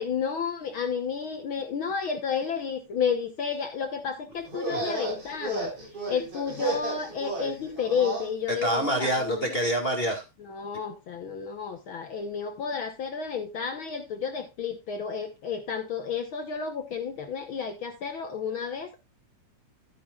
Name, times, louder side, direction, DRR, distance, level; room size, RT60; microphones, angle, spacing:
voice 1, 0.0-5.7 6.1-9.5 10.4-19.0, left 6 dB, 65° left, 1.3 m, -31 dB
sound 1, 4.4-8.3, right 3 dB, 45° right, 5.6 m, -33 dB
voice 2, 8.6-10.2, right 1 dB, 25° left, 1.5 m, -26 dB
13.0 x 9.6 x 2.4 m
omnidirectional pair, 3.6 m